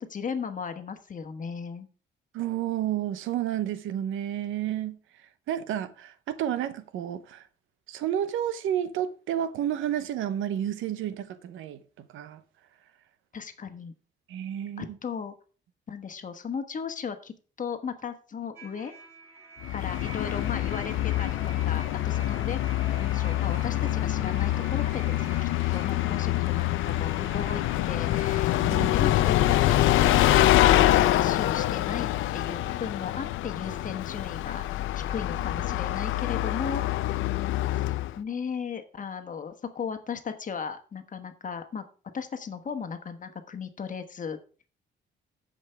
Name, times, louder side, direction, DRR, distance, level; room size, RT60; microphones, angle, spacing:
voice 1, 0.1-1.9 13.3-13.9 14.8-15.3 15.9-18.9 19.7-21.4 21.6-22.6 23.0-28.6 28.9-34.6 35.1-36.8 38.2-41.8 42.1-44.4, left 6 dB, 40° left, 1.3 m, -36 dB
voice 2, 2.3-7.4 7.9-12.4 14.3-15.0 28.6-28.9, right 10 dB, 85° right, 0.8 m, -31 dB
sound 1, 18.6-31.2, right 3 dB, 10° right, 3.7 m, -47 dB
Bus, 19.6-38.2, left 14 dB, 85° left, 0.5 m, -25 dB
14.5 x 5.2 x 3.4 m
cardioid pair, 90°, 20 cm